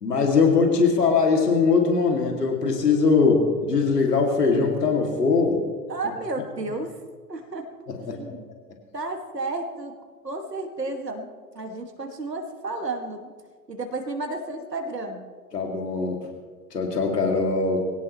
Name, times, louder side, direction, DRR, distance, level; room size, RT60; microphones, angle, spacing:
voice 1, 0.0-5.6 8.1-8.2 15.5-16.2 16.7-17.8, left 4 dB, 80° left, 2 dB, 2.6 m, -21 dB
voice 2, 5.9-7.0 7.3-7.7 8.1-8.4 8.9-10.0 10.2-11.3 11.5-13.3 13.7-15.3, right 2 dB, 85° right, 4 dB, 2.1 m, -32 dB
22.0 x 17.0 x 3.1 m, 1.5 s
figure-of-eight pair, 100°, 47 cm